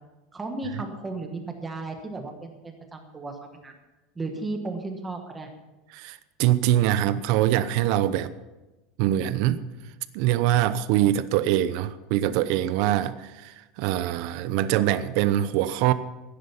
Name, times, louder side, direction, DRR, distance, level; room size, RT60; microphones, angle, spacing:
voice 1, 0.3-3.7 4.1-5.5, right 2 dB, 10° right, 4 dB, 1.3 m, -34 dB
voice 2, 5.9-8.3 9.0-9.6 10.1-15.9, right 12 dB, 50° right, 13 dB, 0.8 m, -23 dB
15.0 x 10.0 x 5.7 m, 1.1 s
supercardioid pair, 170°, 0 cm